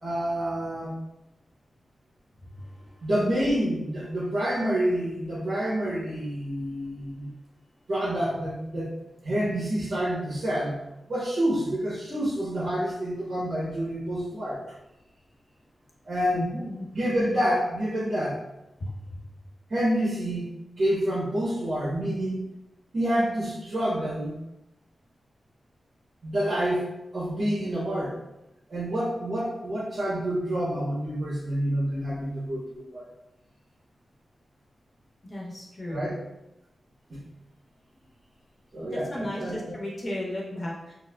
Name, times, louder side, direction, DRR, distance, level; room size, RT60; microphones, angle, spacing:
voice 1, 0.0-0.9 3.0-7.3 7.9-8.9 9.2-10.8 11.1-14.6 16.0-16.6 16.9-18.4 19.7-20.5 20.8-22.5 22.9-24.3 26.2-26.9 27.1-28.2 28.7-33.0 35.9-36.2 37.1-37.2 38.7-39.8, equal, 60° right, -10 dB, 1.2 m, -28 dB
voice 2, 16.3-16.9 18.8-18.9 35.3-36.1 38.9-40.9, left 1 dB, 40° left, -3 dB, 0.9 m, -34 dB
4.4 x 2.1 x 2.3 m, 0.91 s
wide cardioid pair, 100°, 0 cm